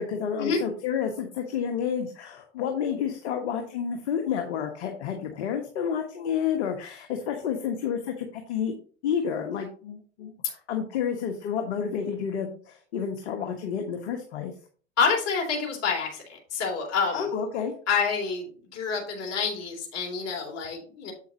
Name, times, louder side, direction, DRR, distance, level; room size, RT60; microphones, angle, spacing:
voice 1, 0.0-8.7 9.0-14.5 17.1-17.7, left 7 dB, 65° left, 4 dB, 1.4 m, -30 dB
voice 2, 15.0-16.2 16.5-17.3 17.9-21.1, left 5 dB, 45° left, 0 dB, 3.4 m, -27 dB
7.9 x 7.8 x 2.9 m, 0.43 s
hypercardioid pair, 85°, 36 cm